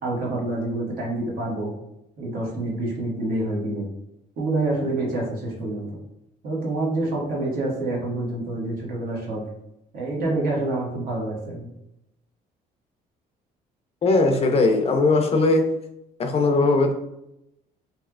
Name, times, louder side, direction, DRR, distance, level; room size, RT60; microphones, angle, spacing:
voice 1, 0.0-1.7 2.2-3.9 4.4-5.9 6.4-9.4 9.9-11.7, right 2 dB, 60° right, -3 dB, 1.3 m, -27 dB
voice 2, 14.0-15.6 16.2-16.9, left 3 dB, 35° left, 4 dB, 0.5 m, -19 dB
3.1 x 2.9 x 2.4 m, 0.83 s
cardioid pair, 110°, 17 cm